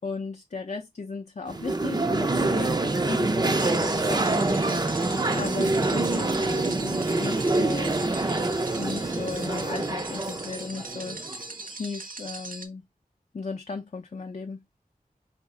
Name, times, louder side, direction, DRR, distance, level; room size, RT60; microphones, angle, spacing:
voice 1, 0.0-4.8 5.4-8.0 8.8-12.8 13.3-14.6, left 4 dB, 50° left, 0.4 m, -36 dB
sound 1, 1.5-11.5, right 2 dB, 30° right, 0.4 m, -26 dB
sound 2, 3.5-12.7, right 3 dB, 65° right, 0.7 m, -40 dB
4.8 x 2.0 x 3.5 m
wide cardioid pair, 55°, 15 cm